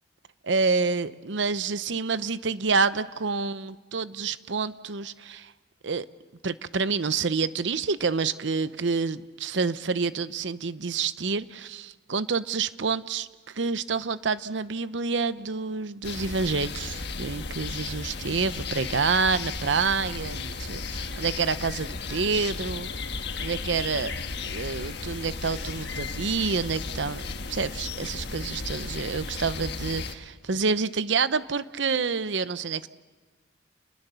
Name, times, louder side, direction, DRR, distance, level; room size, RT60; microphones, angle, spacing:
voice 1, 0.4-5.5 5.8-6.1 6.4-23.0 23.4-24.1 24.4-27.2 27.5-32.9, right 4 dB, 70° right, 14 dB, 0.8 m, -28 dB
sound 1, 16.0-30.1, left 4 dB, 65° left, 1.5 m, -34 dB
29.0 x 21.0 x 6.9 m, 1.3 s
head